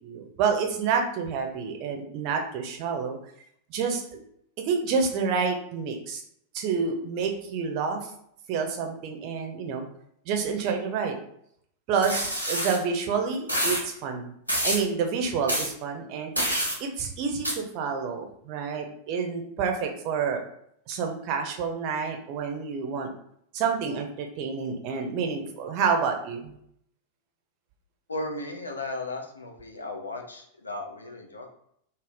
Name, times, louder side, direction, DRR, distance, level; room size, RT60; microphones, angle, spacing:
voice 1, 0.0-3.2 3.7-4.2 4.6-6.2 6.5-8.1 8.5-9.9 10.3-11.2 11.9-14.3 14.6-20.4 20.9-23.1 23.5-26.5, right 5 dB, 45° right, 3 dB, 0.5 m, -28 dB
sound 1, 12.0-12.8 13.5-13.8 14.5-14.8 15.5-15.7 16.4-16.8 17.4-17.5, equal, 90° right, 0.6 m, -26 dB
voice 2, 28.1-31.5, left 2 dB, 80° left, 2 dB, 0.4 m, -35 dB
2.6 x 2.0 x 3.4 m, 0.71 s
figure-of-eight pair, 90°, 0 cm